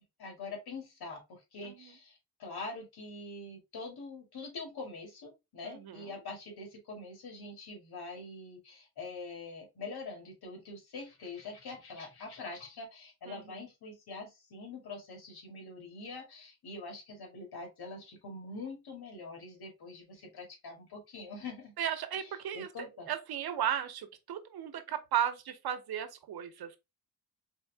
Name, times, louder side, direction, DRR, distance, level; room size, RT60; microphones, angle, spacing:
voice 1, 0.2-2.1 2.4-21.7 22.5-23.1, left 3 dB, 80° left, 2.2 m, -44 dB
voice 2, 1.6-2.0 5.6-6.2 13.3-13.6 21.8-26.8, right 9 dB, 80° right, 0.9 m, -35 dB
4.4 x 3.6 x 3.3 m
cardioid pair, 95°, 37 cm